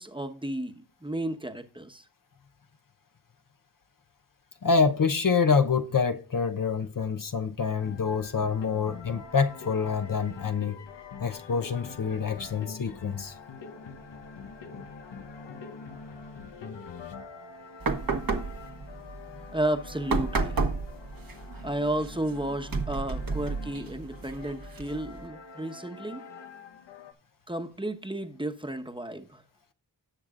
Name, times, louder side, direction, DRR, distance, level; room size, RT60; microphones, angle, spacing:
voice 1, 0.0-2.0 19.5-20.6 21.6-26.2 27.5-29.4, right 1 dB, 10° right, 1.1 m, -33 dB
voice 2, 4.6-10.8 11.2-13.4, left 5 dB, 50° left, 0.8 m, -26 dB
sound 1, 7.8-27.1, left 5 dB, 85° left, 1.1 m, -45 dB
sound 2, 17.8-25.3, right 3 dB, 55° right, 1.2 m, -33 dB
17.5 x 6.5 x 2.5 m
cardioid pair, 60°, 42 cm